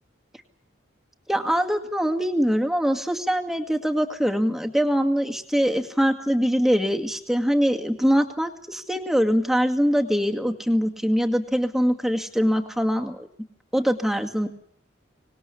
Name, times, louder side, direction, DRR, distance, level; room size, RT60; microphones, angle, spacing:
voice 1, 1.3-13.3 13.7-14.5, equal, ahead, 5 dB, 2.1 m, -23 dB
25.5 x 20.0 x 7.2 m, 0.65 s
head